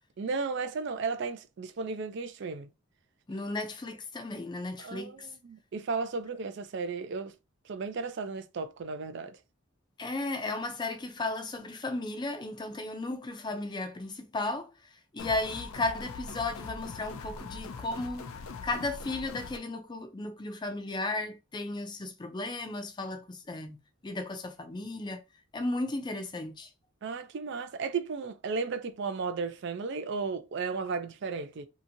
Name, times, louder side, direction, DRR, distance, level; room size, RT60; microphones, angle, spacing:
voice 1, 0.2-2.7 4.8-7.3 7.7-9.4 27.0-31.7, right 4 dB, 55° right, 0.4 m, -34 dB
voice 2, 3.3-5.3 10.0-18.3 18.6-25.2 25.5-26.7, left 2 dB, 20° left, 0.4 m, -35 dB
sound 1, 15.2-19.6, left 4 dB, 85° left, 0.4 m, -42 dB
2.8 x 2.6 x 2.5 m
head